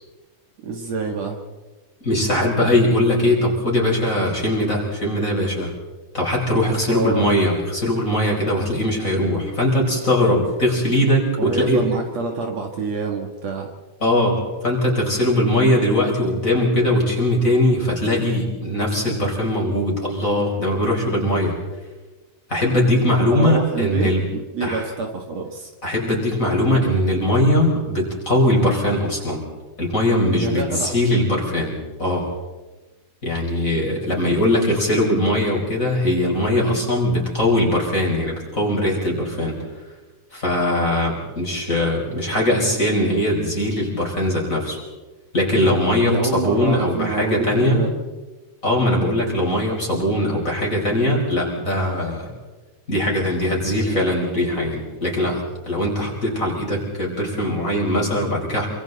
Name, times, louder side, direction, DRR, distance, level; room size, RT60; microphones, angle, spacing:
voice 1, 0.6-1.4 6.9-7.3 11.4-13.7 23.3-25.7 30.4-30.9 46.0-47.9, right 4 dB, 60° right, 2 dB, 2.8 m, -27 dB
voice 2, 2.0-5.7 6.1-11.9 14.0-21.5 22.5-24.2 24.6-24.8 25.8-29.4 29.8-32.3 33.2-39.6 40.3-44.8 45.3-47.9 48.6-52.3 52.9-58.7, left 1 dB, 25° left, -2 dB, 5.3 m, -20 dB
27.5 x 25.5 x 4.1 m, 1.2 s
omnidirectional pair, 3.6 m